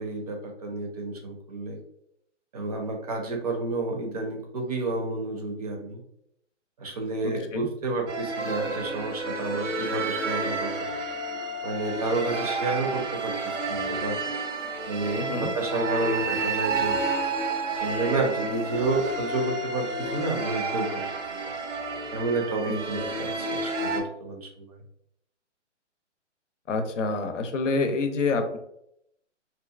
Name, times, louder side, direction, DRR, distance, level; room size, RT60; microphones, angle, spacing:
voice 1, 0.0-1.8 2.5-6.0 6.8-10.7 11.6-14.2 14.9-17.0 17.8-21.0 22.1-24.7, right 3 dB, 30° right, 2 dB, 0.5 m, -30 dB
voice 2, 7.2-7.7 15.1-15.5 22.6-23.0 26.7-28.6, left 3 dB, 80° left, 6 dB, 0.7 m, -28 dB
sound 1, 8.1-24.0, right 3 dB, 80° right, 0.7 m, -30 dB
2.8 x 2.4 x 2.3 m, 0.75 s
hypercardioid pair, 155°, 37 cm